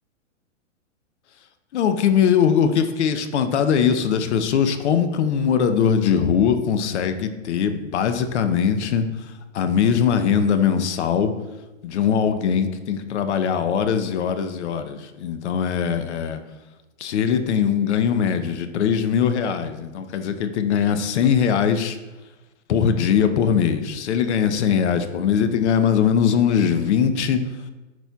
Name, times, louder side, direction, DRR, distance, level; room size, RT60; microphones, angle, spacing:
voice 1, 1.7-11.3 11.8-16.4 17.0-22.0 22.7-27.4, left 7 dB, 60° left, 9 dB, 0.7 m, -21 dB
10.5 x 4.3 x 2.3 m, 1.1 s
hypercardioid pair, 145°, 38 cm